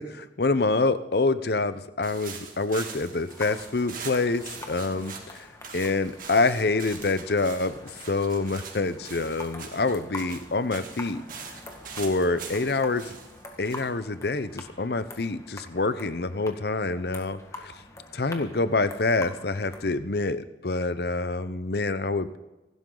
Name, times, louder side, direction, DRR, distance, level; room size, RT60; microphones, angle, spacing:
voice 1, 0.1-5.5 5.7-7.7 8.0-11.2 12.0-13.2 13.6-17.7 18.1-22.4, left 3 dB, 60° left, 13 dB, 0.8 m, -26 dB
sound 1, 2.0-14.8, right 6 dB, 50° right, 2.4 m, -43 dB
sound 2, 3.3-19.9, left 2 dB, 15° left, 1.8 m, -46 dB
27.0 x 12.5 x 3.9 m, 1.1 s
head